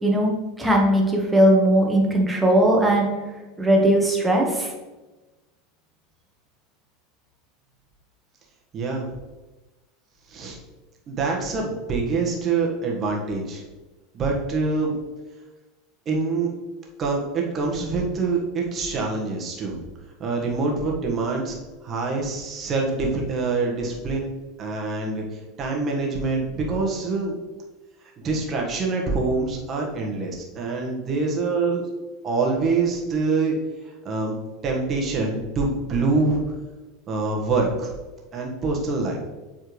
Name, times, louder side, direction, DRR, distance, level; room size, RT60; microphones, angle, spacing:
voice 1, 0.0-3.2 3.6-4.7, right 1 dB, 10° right, 0 dB, 1.5 m, -19 dB
voice 2, 8.7-9.1 10.3-10.6 11.1-13.6 14.1-14.9 16.0-16.5 17.0-19.8 20.2-21.5 21.8-24.3 24.6-25.2 25.6-27.3 28.2-31.8 32.2-33.6 34.0-34.3 34.6-36.4 37.1-37.9 38.3-39.2, right 3 dB, 35° right, 0 dB, 1.5 m, -25 dB
7.8 x 4.3 x 3.3 m, 1.2 s
hypercardioid pair, 80°, 0 cm